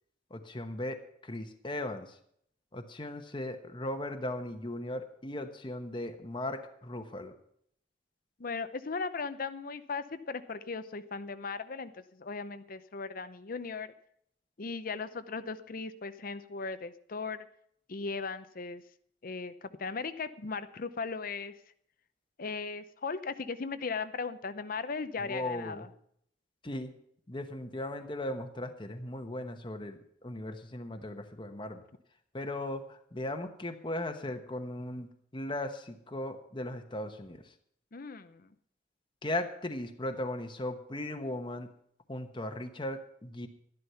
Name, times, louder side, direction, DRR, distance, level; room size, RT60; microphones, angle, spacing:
voice 1, 0.3-2.2 2.7-7.3 25.2-25.9 26.6-26.9 27.3-31.8 32.3-37.4 39.2-41.7 42.1-43.5, left 1 dB, 25° left, 6 dB, 1.1 m, -37 dB
voice 2, 8.4-13.9 14.6-17.5 17.9-18.8 19.2-21.5 22.4-25.9 37.9-38.5, left 4 dB, 50° left, 12 dB, 0.7 m, -37 dB
12.5 x 11.5 x 5.7 m, 0.67 s
head